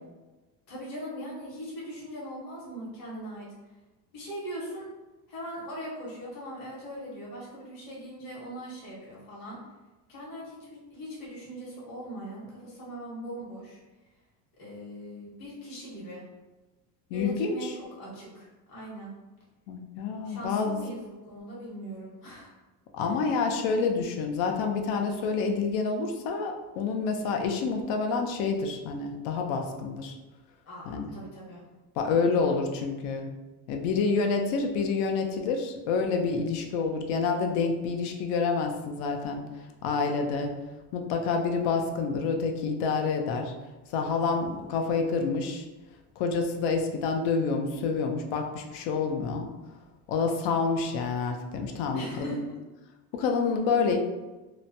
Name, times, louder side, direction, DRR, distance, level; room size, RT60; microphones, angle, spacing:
voice 1, 0.7-3.5 4.1-4.9 5.3-9.6 10.1-13.8 14.6-16.2 17.1-17.7 18.0-19.1 20.2-22.5 23.0-23.2 30.7-31.7 51.9-52.4, equal, 50° left, -6 dB, 1.2 m, -40 dB
voice 2, 17.1-17.7 19.7-20.8 22.9-30.2 30.9-31.1 32.0-33.4 33.7-40.5 40.9-43.5 43.9-45.7 46.2-49.5 50.1-52.4 53.1-54.0, left 4 dB, 75° left, 4 dB, 0.6 m, -28 dB
2.9 x 2.1 x 2.6 m, 1.2 s
cardioid pair, 130°, 43 cm